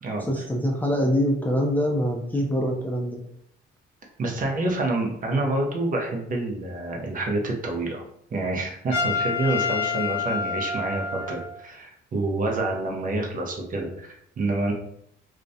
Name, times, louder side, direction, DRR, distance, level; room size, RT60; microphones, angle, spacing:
voice 1, 0.2-3.2, equal, 10° left, -1 dB, 0.4 m, -24 dB
voice 2, 4.2-8.0 8.3-14.7, right 2 dB, 45° right, 1 dB, 0.6 m, -27 dB
Trumpet, 8.9-11.6, left 5 dB, 85° left, 1.0 m, -28 dB
2.4 x 2.1 x 2.6 m, 0.71 s
cardioid pair, 90°, 20 cm